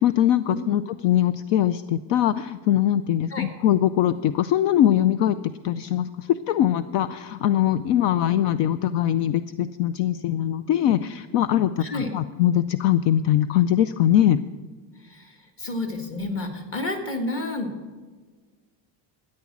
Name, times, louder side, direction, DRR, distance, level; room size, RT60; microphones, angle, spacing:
voice 1, 0.0-5.4 5.6-14.4, left 11 dB, 65° left, 14 dB, 0.6 m, -22 dB
voice 2, 15.0-17.7, left 2 dB, 30° left, 5 dB, 1.8 m, -30 dB
13.5 x 9.7 x 6.0 m, 1.5 s
cardioid pair, 170°, 47 cm